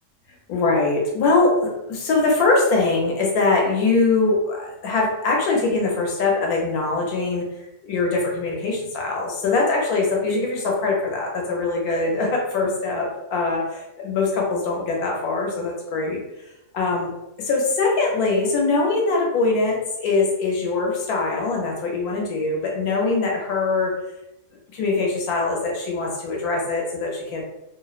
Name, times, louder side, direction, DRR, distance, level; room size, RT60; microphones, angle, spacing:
voice 1, 0.5-7.5 7.8-16.2 16.7-17.1 17.4-24.0 24.7-27.4, left 3 dB, 70° left, -1 dB, 1.1 m, -22 dB
2.8 x 2.0 x 2.3 m, 0.91 s
omnidirectional pair, 1.8 m